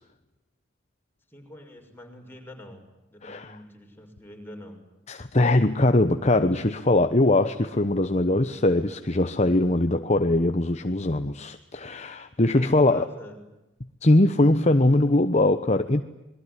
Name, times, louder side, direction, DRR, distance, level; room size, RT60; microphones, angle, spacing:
voice 1, 1.3-2.8 3.1-4.8 12.5-13.5, left 1 dB, 10° left, 2 dB, 6.3 m, -45 dB
voice 2, 3.2-3.5 5.1-13.1 14.0-16.0, left 2 dB, 35° left, 9 dB, 1.0 m, -21 dB
27.0 x 21.5 x 9.8 m, 1.0 s
head